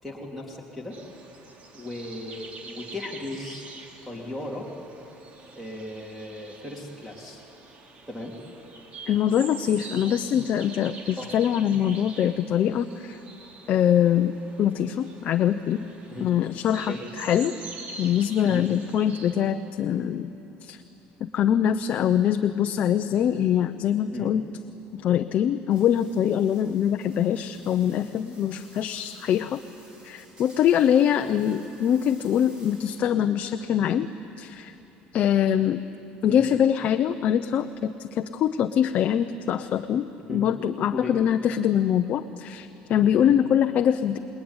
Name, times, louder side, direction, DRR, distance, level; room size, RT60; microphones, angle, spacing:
voice 1, 0.0-1.0 1.7-3.7 4.0-4.7 5.6-7.4 8.1-8.3 11.2-11.3 16.1-16.3 16.9-17.0 18.4-18.7 24.1-24.3 31.2-31.3 36.3-36.4 40.3-40.5 40.9-41.1 43.1-43.4, left 2 dB, ahead, -2 dB, 3.0 m, -36 dB
sound 1, 0.9-19.5, right 3 dB, 40° right, 2.8 m, -45 dB
voice 2, 9.1-13.2 13.7-15.8 16.2-17.6 18.0-20.3 20.6-20.8 21.2-24.5 25.0-29.6 30.0-34.1 34.4-34.7 35.1-35.8 36.2-44.2, left 9 dB, 45° left, 7 dB, 0.7 m, -23 dB
sound 2, 25.7-33.3, right 1 dB, 25° right, 7.0 m, -54 dB
27.5 x 21.5 x 9.8 m, 3.0 s
cardioid pair, 145°, 3 cm